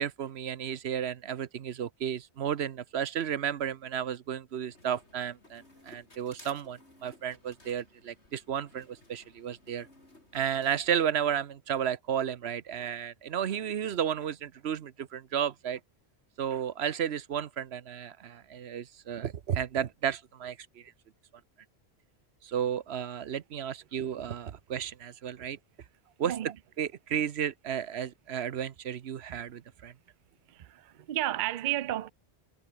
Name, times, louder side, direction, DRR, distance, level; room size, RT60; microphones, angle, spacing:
voice 1, 0.0-9.9 10.3-15.8 16.4-20.9 22.4-25.6 26.2-26.3 26.8-29.9, right 9 dB, 75° right, 1.1 m, -33 dB
sound 1, 4.7-11.1, left 1 dB, 90° left, 6.7 m, -58 dB
voice 2, 26.2-26.5 29.3-29.4 30.5-32.1, right 13 dB, 55° right, 0.6 m, -32 dB
omnidirectional pair, 1.1 m